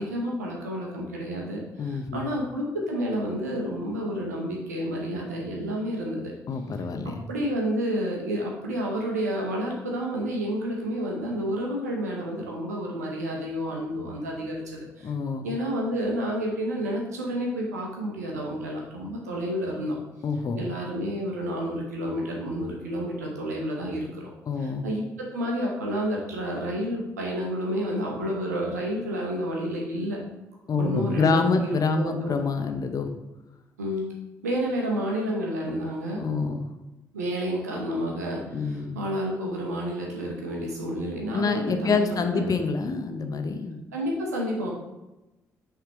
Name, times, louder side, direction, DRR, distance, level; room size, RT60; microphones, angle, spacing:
voice 1, 0.0-6.3 7.3-15.1 15.4-20.0 20.6-24.3 24.6-30.2 30.7-32.4 33.8-34.0 34.4-36.2 37.1-42.5 43.9-44.7, equal, 90° right, -1 dB, 0.9 m, -30 dB
voice 2, 1.8-2.3 6.5-7.2 15.0-15.5 20.2-20.6 24.5-24.8 30.7-33.1 36.2-36.6 38.5-39.0 41.3-43.8, left 4 dB, 45° left, 6 dB, 0.7 m, -26 dB
5.8 x 3.6 x 4.5 m, 1.0 s
hypercardioid pair, 45°, 8 cm